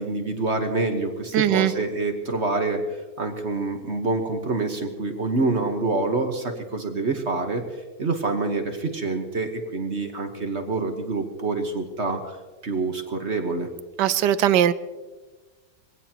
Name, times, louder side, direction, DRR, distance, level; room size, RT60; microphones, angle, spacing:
voice 1, 0.0-2.8 3.2-7.6 8.0-12.4 12.6-13.7, right 3 dB, 40° right, 4 dB, 1.4 m, -26 dB
voice 2, 1.3-1.7 14.0-14.7, right 11 dB, 70° right, 15 dB, 1.2 m, -19 dB
22.5 x 17.0 x 3.0 m, 1.3 s
omnidirectional pair, 2.0 m